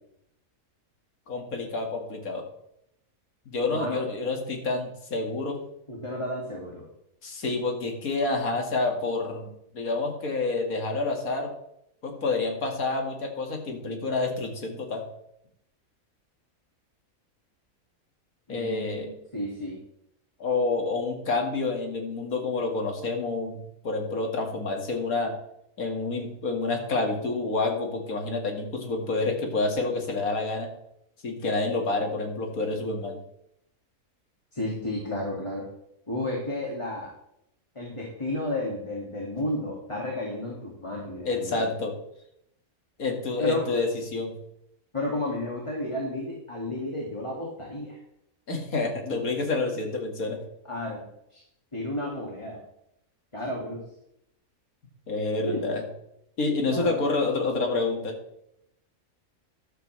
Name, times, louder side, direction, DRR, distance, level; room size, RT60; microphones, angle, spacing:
voice 1, 1.3-2.4 3.5-5.6 7.2-11.5 12.0-15.1 18.5-19.1 20.4-25.3 25.8-30.7 31.2-33.2 41.3-41.9 43.0-44.3 48.5-50.4 55.1-55.8 56.4-58.2, left 3 dB, 75° left, 2 dB, 2.3 m, -28 dB
voice 2, 3.7-4.1 5.9-6.9 18.5-19.8 34.5-35.6 36.1-37.1 37.7-41.6 43.4-43.7 44.9-48.0 50.6-51.0 51.3-51.4 51.7-52.6 53.3-53.8 55.4-55.7 56.6-57.0, left 1 dB, 20° left, -3 dB, 2.1 m, -32 dB
13.5 x 11.5 x 3.2 m, 0.78 s
omnidirectional pair, 1.5 m